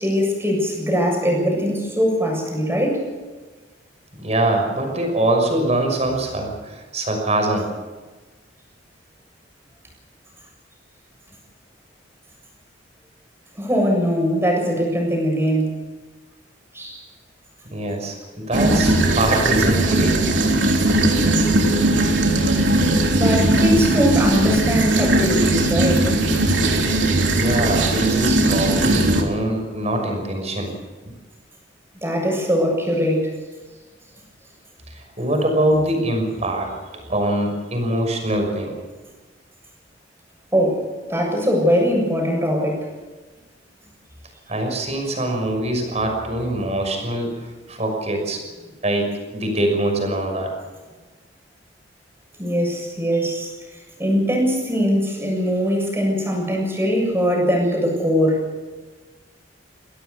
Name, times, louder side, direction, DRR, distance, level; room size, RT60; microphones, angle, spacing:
voice 1, 0.0-3.0 13.6-15.7 16.7-17.0 23.1-26.0 32.0-33.3 40.5-42.9 52.4-58.4, equal, 15° right, 1 dB, 7.4 m, -21 dB
voice 2, 4.2-7.7 17.7-20.6 27.3-30.7 34.9-38.7 44.5-48.4 48.8-50.5, right 1 dB, 35° right, 3 dB, 6.2 m, -23 dB
sound 1, 18.5-29.2, right 2 dB, 75° right, 3.4 m, -18 dB
24.0 x 17.0 x 7.1 m, 1.3 s
head